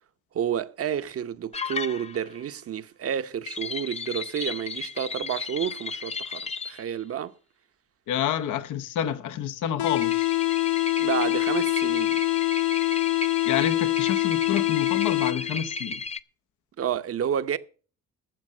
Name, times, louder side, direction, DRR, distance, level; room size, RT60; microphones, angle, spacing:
voice 1, 0.3-7.3 11.0-12.2 16.8-17.6, right 9 dB, 50° right, 0.8 m, -30 dB
sound 1, 1.5-2.4 3.5-6.8 9.9-16.2, left 4 dB, 20° left, 0.5 m, -34 dB
voice 2, 8.1-10.4 13.4-16.0, left 9 dB, 85° left, 1.0 m, -29 dB
sound 2, 9.8-15.8, left 22 dB, 70° left, 0.6 m, -25 dB
12.5 x 7.5 x 6.4 m
cardioid pair, 90°, 30 cm